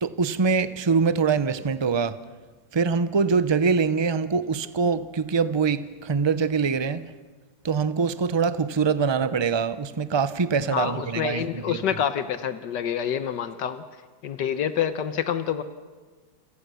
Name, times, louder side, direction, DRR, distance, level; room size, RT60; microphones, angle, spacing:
voice 1, 0.0-2.2 2.7-7.0 7.6-11.8, right 5 dB, 45° right, 0.3 m, -24 dB
voice 2, 10.7-13.9 14.2-15.6, left 9 dB, 80° left, 1.6 m, -27 dB
29.0 x 26.5 x 6.9 m
omnidirectional pair, 1.8 m